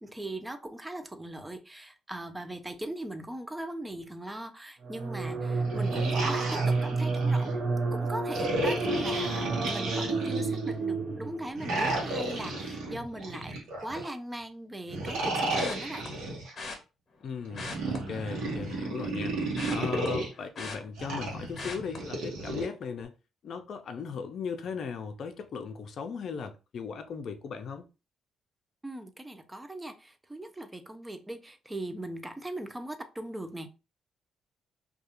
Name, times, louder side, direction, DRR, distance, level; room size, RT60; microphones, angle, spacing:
voice 1, 0.0-7.5 7.9-16.3 28.8-33.7, right 1 dB, 15° right, 0.4 m, -39 dB
sound 1, 4.8-11.7, right 3 dB, 50° right, 0.7 m, -30 dB
sound 2, 5.6-7.5 8.3-10.7 11.5-14.1 14.9-16.5 17.5-20.3 21.0-22.6, right 2 dB, 90° right, 0.9 m, -33 dB
sound 3, 15.6-16.1 16.6-16.8 17.4-18.7 19.0-21.2 21.6-22.0 22.4-22.7 23.0-23.1, left 3 dB, 45° left, 0.9 m, -41 dB
voice 2, 17.2-23.1 23.4-27.9, left 6 dB, 60° left, 0.5 m, -37 dB
2.4 x 2.3 x 2.8 m
cardioid pair, 90°, 0 cm